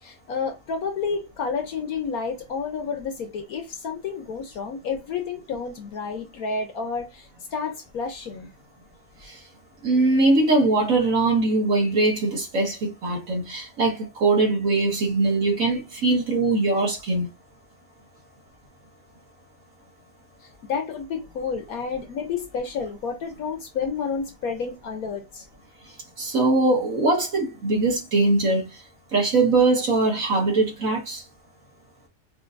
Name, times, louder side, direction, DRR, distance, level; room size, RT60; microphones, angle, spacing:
voice 1, 0.0-8.5 20.4-25.5, left 5 dB, 65° left, 1.1 m, -30 dB
voice 2, 9.8-17.3 26.2-28.7 29.1-31.2, right 3 dB, 50° right, 1.9 m, -21 dB
5.0 x 2.6 x 2.5 m
omnidirectional pair, 1.9 m